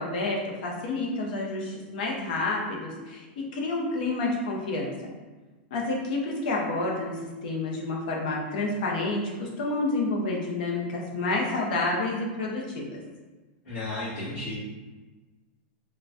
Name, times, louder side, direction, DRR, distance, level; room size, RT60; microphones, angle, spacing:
voice 1, 0.0-4.9 5.7-13.0, left 2 dB, 55° left, -2 dB, 0.7 m, -29 dB
voice 2, 13.6-14.5, left 2 dB, 30° left, -16 dB, 1.5 m, -33 dB
3.8 x 2.2 x 2.5 m, 1.2 s
supercardioid pair, 175°, 5 cm